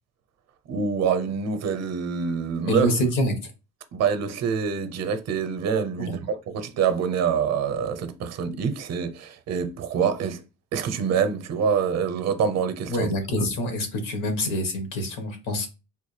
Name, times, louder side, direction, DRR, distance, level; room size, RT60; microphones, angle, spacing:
voice 1, 0.7-2.9 3.9-10.4 10.7-13.1, right 6 dB, 55° right, 0.6 m, -26 dB
voice 2, 2.7-3.5 6.0-6.2 12.9-15.7, equal, 75° left, 1.1 m, -26 dB
3.5 x 2.5 x 3.1 m
cardioid pair, 175°, 32 cm